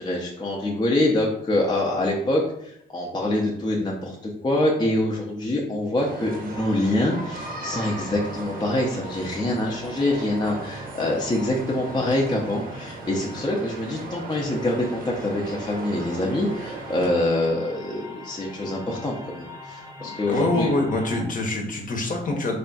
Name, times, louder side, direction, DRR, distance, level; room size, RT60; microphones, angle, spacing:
voice 1, 0.0-20.7, left 1 dB, 20° left, -2 dB, 0.6 m, -25 dB
sound 1, 6.0-17.1, right 3 dB, 45° right, 0.7 m, -38 dB
sound 2, 6.2-21.2, left 2 dB, 10° right, 0.9 m, -43 dB
voice 2, 20.3-22.6, left 2 dB, 40° left, 2 dB, 0.9 m, -25 dB
3.3 x 2.3 x 3.9 m, 0.74 s
cardioid pair, 90°, 20 cm